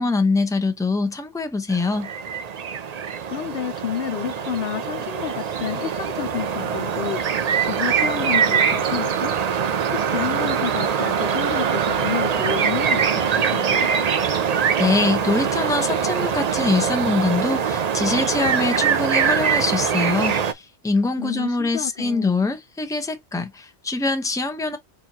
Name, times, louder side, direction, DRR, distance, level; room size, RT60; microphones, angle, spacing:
voice 1, 0.0-2.1 14.8-24.8, left 3 dB, 5° left, 0.7 m, -23 dB
sound 1, 1.7-20.5, right 7 dB, 50° right, 0.5 m, -23 dB
voice 2, 2.9-7.2 7.6-9.3 9.9-14.0 21.2-22.5, left 9 dB, 65° left, 0.7 m, -30 dB
sound 2, 6.2-13.5, right 9 dB, 75° right, 0.9 m, -34 dB
4.3 x 4.2 x 2.8 m
omnidirectional pair, 1.2 m